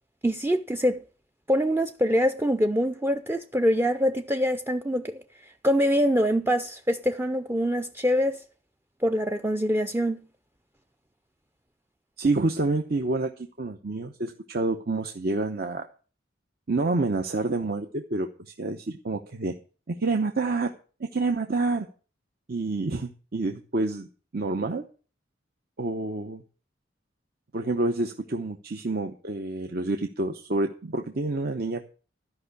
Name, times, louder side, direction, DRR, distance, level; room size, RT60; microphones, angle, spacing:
voice 1, 0.2-1.0 1.5-8.4 9.0-10.2, equal, 10° right, 0.5 m, -24 dB
voice 2, 12.2-15.9 16.7-19.5 19.9-20.7 21.0-21.9 22.5-24.1 24.3-24.8 25.8-26.4 27.5-31.9, right 3 dB, 55° right, 0.9 m, -28 dB
13.0 x 5.5 x 8.2 m
head